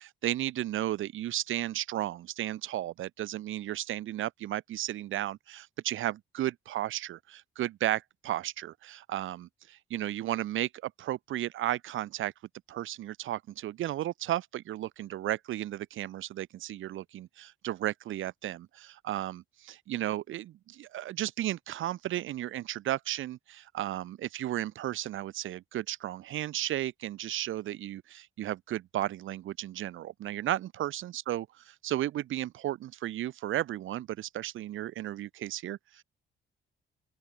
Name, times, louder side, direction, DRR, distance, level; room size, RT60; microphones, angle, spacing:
voice 1, 0.0-12.3 12.7-36.0, right 13 dB, 80° right, 5.6 m, -34 dB
open air
cardioid pair, 90°, 20 cm